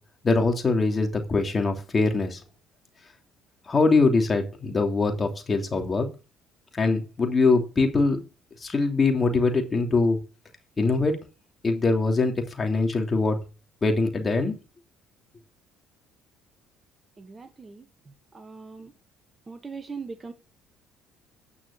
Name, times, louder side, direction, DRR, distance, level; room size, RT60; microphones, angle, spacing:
voice 1, 0.2-2.4 3.7-6.1 6.7-8.2 8.6-10.2 10.8-11.2 11.6-13.4 13.8-14.5, left 3 dB, 30° left, 3.0 m, -23 dB
voice 2, 17.2-17.8 18.3-18.9 19.5-20.3, right 4 dB, 30° right, 1.5 m, -40 dB
9.8 x 6.1 x 6.7 m
hypercardioid pair, 65°, 0 cm